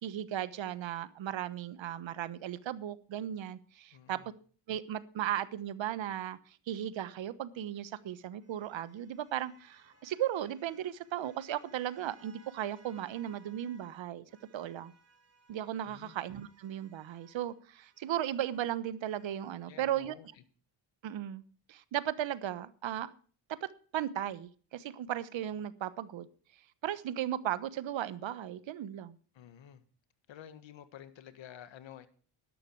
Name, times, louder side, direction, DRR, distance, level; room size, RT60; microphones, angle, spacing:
voice 1, 0.0-4.2 4.7-14.2 14.5-14.9 15.5-20.1 21.0-21.4 21.7-23.1 23.5-26.3 26.8-29.2, right 11 dB, 65° right, 15 dB, 1.2 m, -36 dB
voice 2, 3.9-4.3 15.8-16.1 19.7-20.4 29.3-29.8 30.3-32.1, left 10 dB, 65° left, 12 dB, 1.7 m, -51 dB
sound 1, 7.3-14.0 14.3-19.6, right 4 dB, 30° right, 3.9 m, -64 dB
12.0 x 11.5 x 4.7 m, 0.43 s
cardioid pair, 85°, 49 cm